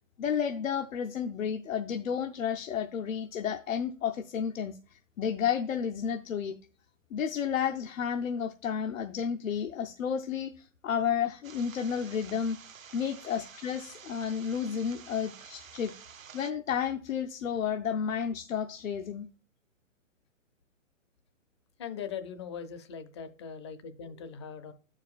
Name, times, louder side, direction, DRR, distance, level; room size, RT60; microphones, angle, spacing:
voice 1, 0.2-4.8 5.2-6.6 7.1-12.6 12.9-15.9 16.3-19.3, left 7 dB, 90° left, 0.7 m, -31 dB
sound 1, 11.4-16.5, right 7 dB, 90° right, 0.9 m, -50 dB
voice 2, 21.8-24.7, left 7 dB, 25° left, 0.4 m, -40 dB
14.5 x 4.9 x 2.3 m
hypercardioid pair, 140°, 39 cm